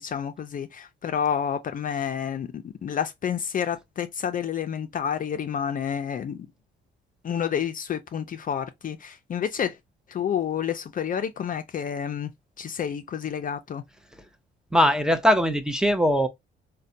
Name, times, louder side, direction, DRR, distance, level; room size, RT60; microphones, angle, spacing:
voice 1, 0.0-6.5 7.2-9.8 10.1-12.3 12.6-13.8, left 8 dB, 45° left, 0.4 m, -29 dB
voice 2, 14.7-16.3, equal, 5° right, 0.6 m, -20 dB
3.9 x 2.1 x 2.6 m
cardioid pair, 90°, 20 cm